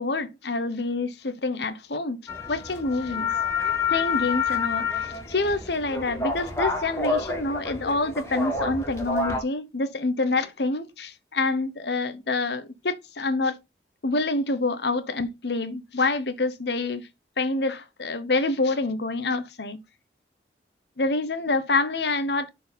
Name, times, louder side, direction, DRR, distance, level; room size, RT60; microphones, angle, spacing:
voice 1, 0.0-2.2 2.5-3.3 3.6-13.6 14.0-17.0 17.4-19.8 21.0-22.5, left 3 dB, 70° left, 1.1 m, -27 dB
sound 1, 2.3-9.4, left 4 dB, 15° left, 2.0 m, -28 dB
6.2 x 4.8 x 5.2 m
head